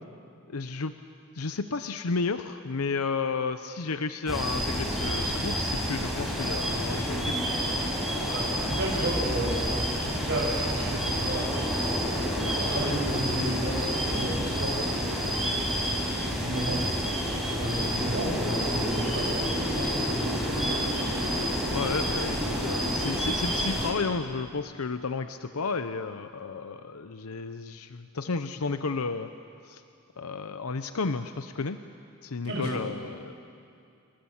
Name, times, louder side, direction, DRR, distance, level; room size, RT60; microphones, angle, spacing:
voice 1, 0.5-0.9 1.3-7.5 8.1-8.3 21.7-29.3 29.7-29.8 30.2-31.8 32.2-33.3, left 4 dB, 85° left, 9 dB, 0.8 m, -32 dB
sound 1, 4.3-23.9, equal, ahead, 4.9 m, -29 dB
voice 2, 8.3-11.5 12.4-15.4 16.3-16.8 17.4-20.9 22.5-22.9 32.4-32.8, right 1 dB, 55° right, -2 dB, 6.3 m, -33 dB
29.0 x 23.5 x 7.3 m, 2.5 s
head